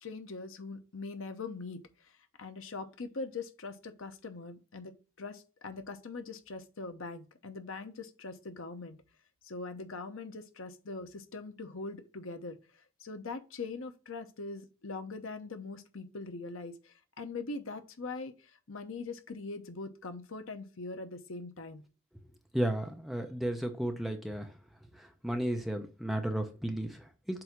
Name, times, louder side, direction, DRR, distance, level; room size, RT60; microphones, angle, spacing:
voice 1, 0.0-1.8 2.4-9.0 9.4-12.6 13.0-18.3 18.7-21.8, left 3 dB, 70° left, 0.8 m, -42 dB
voice 2, 22.5-24.5 25.2-27.4, right 1 dB, ahead, 0.6 m, -33 dB
7.7 x 2.7 x 5.8 m
head